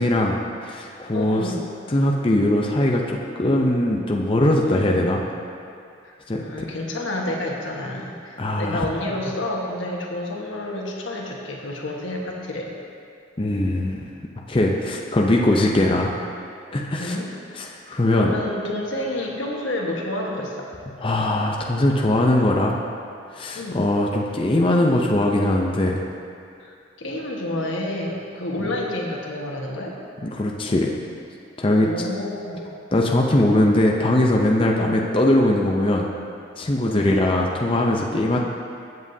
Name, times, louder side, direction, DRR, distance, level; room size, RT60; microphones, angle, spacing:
voice 1, 0.0-1.5 1.9-5.2 6.3-6.7 8.4-8.8 13.4-14.0 14.5-16.1 16.7-17.2 17.6-18.3 21.0-22.8 23.3-26.0 28.6-28.7 30.2-30.9 31.6-31.9 32.9-36.1 36.6-38.4, left 1 dB, 30° left, -1 dB, 0.6 m, -20 dB
voice 2, 1.1-1.6 4.6-5.0 6.0-12.7 15.7-15.8 17.0-17.3 17.9-20.7 23.5-23.9 26.6-29.9 31.8-32.7 34.7-35.0 36.8-37.2, left 1 dB, 90° left, -1 dB, 1.4 m, -29 dB
15.5 x 7.4 x 2.7 m, 2.4 s
head